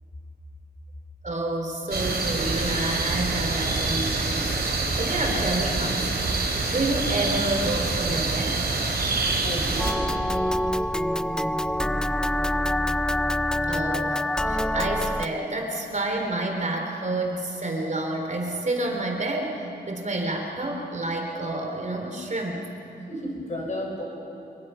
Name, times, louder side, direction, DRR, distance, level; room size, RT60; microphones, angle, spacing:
voice 1, 1.2-6.3 6.7-8.7 13.7-22.6, right 2 dB, 45° right, 2 dB, 3.6 m, -29 dB
sound 1, 1.9-9.9, right 3 dB, 75° right, 3.2 m, -26 dB
voice 2, 9.4-10.4 23.1-24.0, equal, 45° left, 0 dB, 5.9 m, -33 dB
sound 2, 9.8-15.3, left 1 dB, 5° left, 0.5 m, -25 dB
26.0 x 23.0 x 5.7 m, 2.7 s
wide cardioid pair, 85°, 17 cm